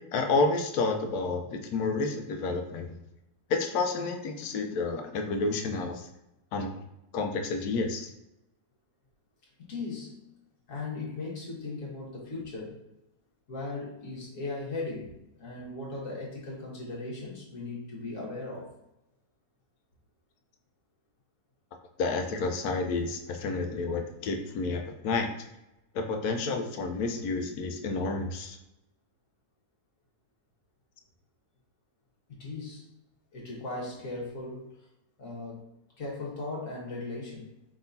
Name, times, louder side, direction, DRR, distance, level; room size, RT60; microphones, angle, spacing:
voice 1, 0.1-3.0 3.5-6.1 6.5-6.7 7.1-8.1 22.0-25.3 25.9-28.6, left 3 dB, 80° left, 4 dB, 1.2 m, -30 dB
voice 2, 9.6-10.1 10.7-12.9 13.5-18.7 32.3-32.9 33.3-34.9 35.2-35.7 36.0-37.5, left 3 dB, 60° left, -4 dB, 1.7 m, -38 dB
4.9 x 3.8 x 2.7 m, 0.87 s
omnidirectional pair, 1.6 m